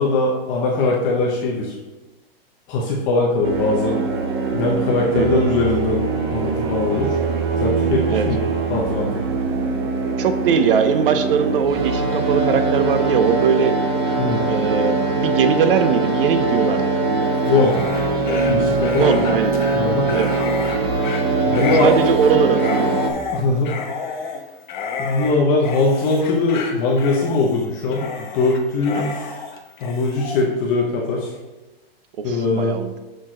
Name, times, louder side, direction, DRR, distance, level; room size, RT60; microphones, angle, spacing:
voice 1, 0.0-1.8 2.7-4.0 4.5-7.2 7.6-9.3 14.2-14.4 17.4-17.7 18.3-19.3 19.7-20.1 21.4-21.9 23.3-23.7 25.0-29.3 29.8-31.3 32.2-32.7, left 3 dB, 20° left, -3 dB, 0.6 m, -21 dB
sound 1, 3.4-23.1, right 3 dB, 25° right, 0.5 m, -22 dB
voice 2, 10.2-13.7 14.5-16.9 19.0-19.5 20.1-20.4 21.8-23.0 28.9-29.1 32.3-33.0, right 7 dB, 60° right, 9 dB, 0.7 m, -20 dB
Dog, 17.4-30.4, left 5 dB, 50° left, 1.0 m, -31 dB
6.5 x 6.2 x 3.7 m, 1.1 s
supercardioid pair, 175°, 31 cm